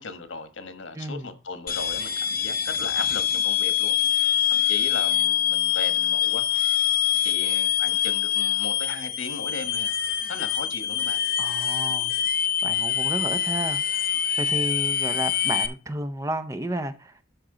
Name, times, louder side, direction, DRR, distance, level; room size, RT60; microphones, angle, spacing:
voice 1, 0.0-6.7 7.2-9.9 10.3-11.2, left 4 dB, 85° left, 1.3 m, -37 dB
voice 2, 0.9-1.3 11.4-12.3 12.6-14.0 14.4-17.2, right 1 dB, 15° right, 0.6 m, -32 dB
sound 1, 1.7-15.7, left 9 dB, 50° left, 0.8 m, -25 dB
12.5 x 4.4 x 3.8 m
head